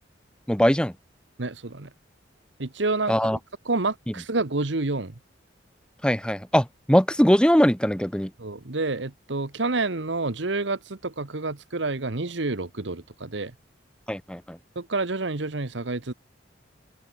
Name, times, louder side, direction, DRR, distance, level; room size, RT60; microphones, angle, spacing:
voice 1, 0.5-0.9 3.1-3.4 6.0-8.3 14.1-14.6, equal, 5° left, 1.0 m, -21 dB
voice 2, 1.4-1.9 2.6-3.3 3.6-5.2 8.4-13.5 14.7-16.1, right 3 dB, 70° right, 1.3 m, -28 dB
open air
head